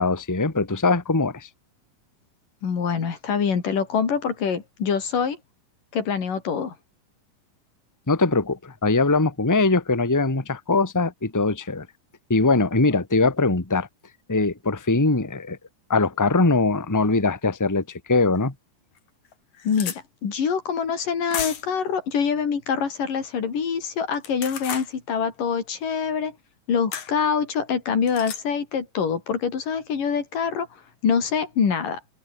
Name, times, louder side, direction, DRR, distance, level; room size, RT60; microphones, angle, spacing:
voice 1, 0.0-1.5 8.1-11.9 12.3-13.9 14.3-15.6 15.9-18.5, left 3 dB, 5° left, 1.6 m, -21 dB
voice 2, 2.6-5.4 5.9-6.8 19.7-19.9 20.2-26.3 26.7-30.7 31.0-32.0, left 6 dB, 85° left, 5.4 m, -25 dB
sound 1, 18.4-18.5 19.0-19.1 19.3-20.0 21.3-21.8 24.1-24.9 26.9-27.1 28.1-28.4, left 8 dB, 65° left, 3.7 m, -33 dB
omnidirectional pair, 3.7 m